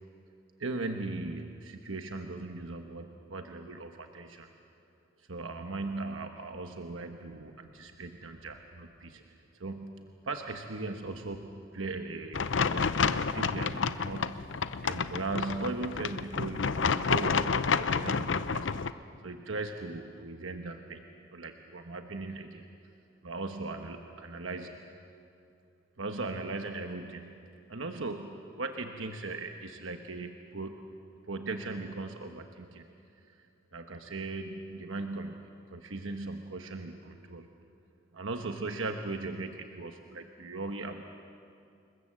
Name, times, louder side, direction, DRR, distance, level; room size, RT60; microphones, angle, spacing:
voice 1, 0.6-4.5 5.2-21.1 21.3-22.7 23.2-24.8 26.0-27.4 27.7-30.9 31.3-32.9 33.2-37.5 38.1-41.0, right 3 dB, 85° right, 5 dB, 1.2 m, -39 dB
sound 1, 12.3-18.9, left 5 dB, 70° left, 0.6 m, -29 dB
27.5 x 21.5 x 7.6 m, 2.5 s
head